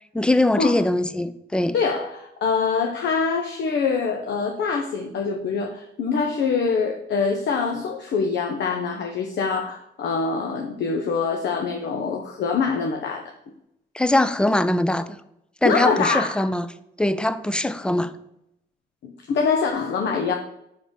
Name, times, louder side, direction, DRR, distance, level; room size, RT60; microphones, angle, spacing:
voice 1, 0.1-1.8 13.9-15.2 15.6-16.7 17.0-18.1, left 1 dB, 5° left, 13 dB, 0.5 m, -22 dB
voice 2, 1.7-13.3 15.6-16.4 19.0-20.3, left 5 dB, 60° left, 4 dB, 0.8 m, -24 dB
5.5 x 5.1 x 5.0 m, 0.79 s
cardioid pair, 90°, 20 cm